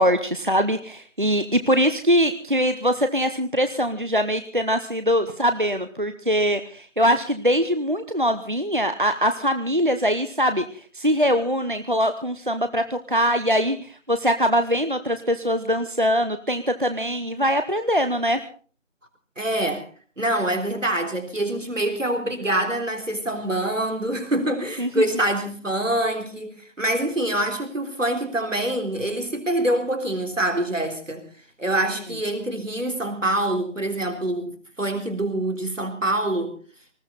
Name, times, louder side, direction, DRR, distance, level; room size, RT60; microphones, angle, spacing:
voice 1, 0.0-10.6 10.9-18.4 24.8-25.0, equal, 40° right, 9 dB, 0.8 m, -22 dB
voice 2, 19.4-19.8 20.2-31.3 31.6-36.6, right 1 dB, 80° right, 6 dB, 3.8 m, -25 dB
19.5 x 16.0 x 4.1 m, 0.43 s
figure-of-eight pair, 175°, 38 cm